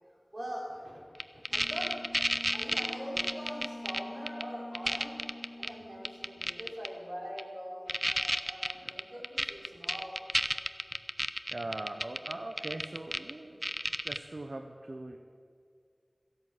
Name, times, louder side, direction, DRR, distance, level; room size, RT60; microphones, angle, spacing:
voice 1, 0.3-1.0 1.5-2.0 2.5-5.2 5.6-10.2, equal, 50° right, -3 dB, 4.5 m, -42 dB
sound 1, 1.2-4.0 4.3-4.4 4.7-5.7 6.0-6.9 7.4-7.5 7.9-13.3 13.6-14.2, equal, 10° right, 0.6 m, -31 dB
Wind instrument woodwind instrument, 1.5-6.9, left 1 dB, 55° left, 1.7 m, -46 dB
voice 2, 8.8-9.2 9.7-9.8 11.5-13.7 14.0-15.2, right 2 dB, 70° right, 5 dB, 0.8 m, -41 dB
15.0 x 11.0 x 7.7 m, 2.2 s
wide cardioid pair, 55°, 0 cm